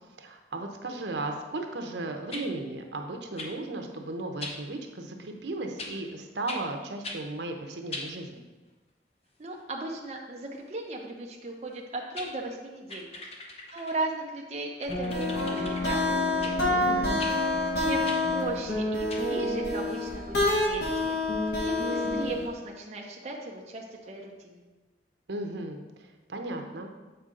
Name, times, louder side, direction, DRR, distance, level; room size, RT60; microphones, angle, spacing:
voice 1, 0.2-8.4 16.7-17.4 25.3-26.9, right 2 dB, 85° right, 4 dB, 0.8 m, -36 dB
sound 1, 2.3-2.5 3.4-3.5 4.4-4.6 5.8-6.0 6.5-6.6 7.0-7.2 7.9-8.1 11.7-11.8 12.2-12.3 12.9-14.0 14.8-15.9 16.4-16.6 17.2-17.4 18.1-18.2 19.1-19.2, left 2 dB, 35° left, 0.7 m, -39 dB
voice 2, 9.4-13.1 13.7-16.5 17.8-21.2 21.6-24.6, right 2 dB, 35° right, -1 dB, 0.7 m, -37 dB
sound 2, 14.9-22.5, left 2 dB, 75° left, 1.9 m, -27 dB
7.9 x 4.7 x 3.8 m, 1.2 s
head